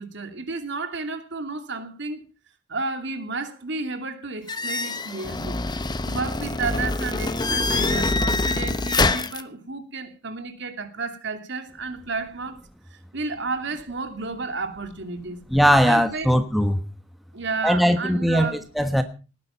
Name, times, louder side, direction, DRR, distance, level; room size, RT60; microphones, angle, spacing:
voice 1, 0.0-2.3 2.7-5.6 6.0-12.6 12.9-15.4 15.9-16.3 17.3-18.6, right 3 dB, 60° right, 2.7 m, -32 dB
sound 1, 4.5-9.4, left 2 dB, 20° left, 0.9 m, -25 dB
voice 2, 15.5-16.8 17.6-19.0, equal, ahead, 1.2 m, -20 dB
19.0 x 10.5 x 5.7 m
head